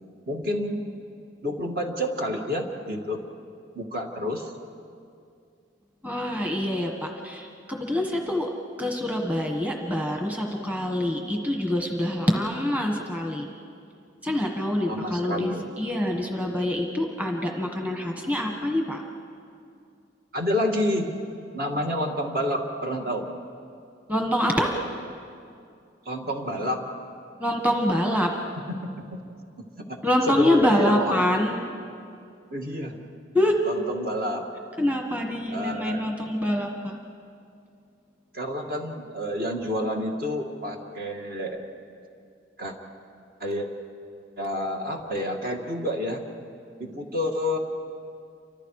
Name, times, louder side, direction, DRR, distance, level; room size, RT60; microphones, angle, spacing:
voice 1, 0.3-0.8 1.4-3.2 3.8-4.5 14.9-15.7 20.3-21.2 21.5-23.3 26.1-26.8 28.7-29.2 29.8-30.0 30.3-31.5 32.5-33.0 33.6-34.5 35.5-36.1 38.3-41.6 42.6-42.8 43.4-43.7 44.4-46.2 46.8-47.6, left 1 dB, 50° right, 1 dB, 2.3 m, -29 dB
voice 2, 6.0-8.5 8.8-13.5 14.2-19.0 24.1-24.8 27.4-28.3 30.0-31.5 33.3-33.6 34.8-37.0, left 1 dB, 10° right, 1 dB, 1.6 m, -25 dB
29.5 x 25.5 x 4.9 m, 2.4 s
head